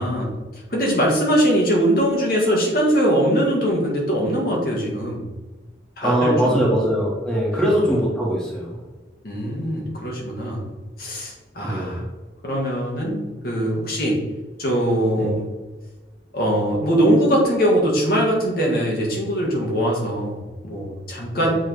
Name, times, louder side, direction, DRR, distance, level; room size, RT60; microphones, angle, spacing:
voice 1, 0.0-5.2 6.0-6.6 7.5-7.6 9.2-10.6 11.0-12.0 12.4-14.2 14.6-15.5 16.3-21.5, equal, 50° left, -2 dB, 1.6 m, -21 dB
voice 2, 6.0-8.8 11.6-12.0 15.2-15.3 21.3-21.5, equal, 5° left, -5 dB, 1.5 m, -21 dB
7.7 x 3.5 x 4.6 m, 1.2 s
head